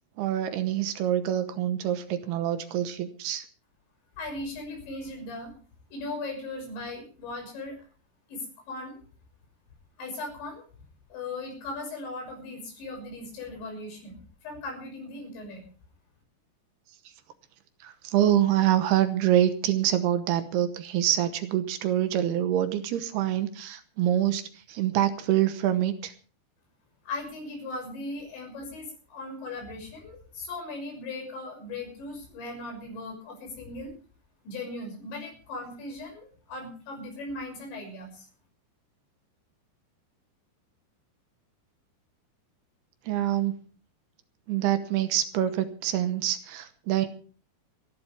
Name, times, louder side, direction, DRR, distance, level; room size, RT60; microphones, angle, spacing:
voice 1, 0.2-3.5 17.8-26.1 43.1-43.5 44.5-47.2, right 11 dB, 75° right, 10 dB, 2.9 m, -26 dB
voice 2, 4.2-5.5 5.9-7.8 8.3-9.0 10.0-10.6 11.1-15.6 27.0-33.9 34.5-38.3, left 2 dB, 85° left, 1 dB, 8.7 m, -38 dB
28.0 x 11.5 x 3.5 m, 0.40 s
omnidirectional pair, 5.0 m